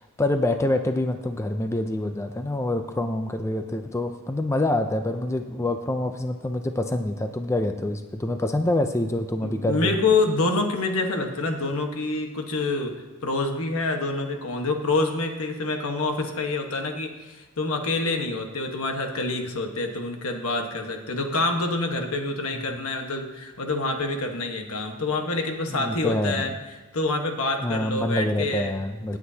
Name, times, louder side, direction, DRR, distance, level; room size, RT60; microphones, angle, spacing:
voice 1, 0.0-10.0 22.7-22.9 25.7-26.5 27.6-29.2, left 1 dB, 15° left, 6 dB, 0.4 m, -26 dB
voice 2, 9.4-12.9 13.2-26.5 26.9-28.7, left 3 dB, 70° left, 3 dB, 1.3 m, -27 dB
18.0 x 8.0 x 2.8 m, 1.2 s
head